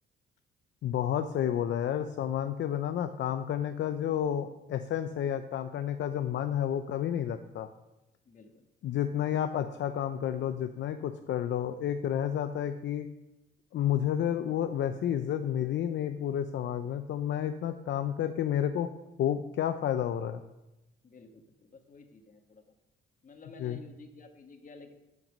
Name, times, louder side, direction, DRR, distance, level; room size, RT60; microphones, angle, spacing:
voice 1, 0.8-7.7 8.8-13.1 13.7-18.9 19.2-20.4 23.6-23.8, left 10 dB, 65° left, 9 dB, 0.6 m, -30 dB
voice 2, 8.3-8.6 21.0-22.6 23.2-25.0, left 3 dB, 40° left, 4 dB, 1.8 m, -52 dB
13.5 x 6.0 x 5.3 m, 0.99 s
cardioid pair, 90°, 20 cm